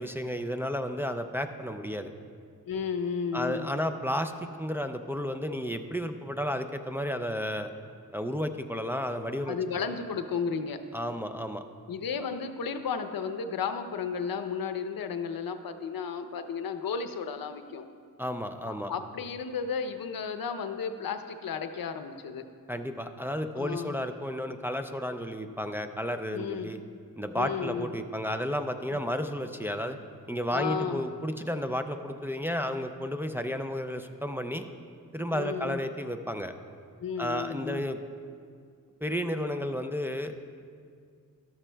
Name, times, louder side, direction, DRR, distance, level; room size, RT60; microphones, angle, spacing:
voice 1, 0.0-2.1 3.3-7.7 8.1-9.6 10.9-11.6 18.2-18.9 22.7-26.8 27.2-30.0 30.3-34.6 35.1-36.5 37.2-38.0 39.0-40.4, equal, 5° right, 6 dB, 0.3 m, -32 dB
voice 2, 2.7-3.7 9.5-10.8 11.9-17.9 18.6-22.5 23.6-23.9 26.3-26.7 27.3-27.9 28.9-29.0 30.5-31.1 35.3-35.8 37.0-37.8, left 6 dB, 80° left, 8 dB, 0.7 m, -33 dB
13.0 x 12.5 x 2.2 m, 2.2 s
wide cardioid pair, 160°, 34 cm